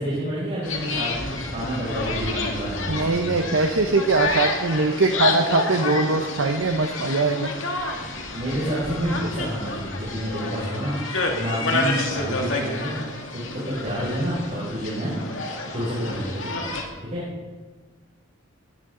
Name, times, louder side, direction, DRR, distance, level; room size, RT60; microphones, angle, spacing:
voice 1, 0.0-3.5 7.9-10.9 11.3-13.0 13.3-15.2 15.7-16.7 17.0-17.2, equal, 35° right, -9 dB, 5.9 m, -29 dB
sound 1, 0.6-16.8, left 3 dB, 70° left, 2.0 m, -29 dB
voice 2, 2.9-7.5, right 3 dB, 75° right, 4 dB, 0.9 m, -22 dB
19.5 x 14.5 x 3.9 m, 1.3 s
head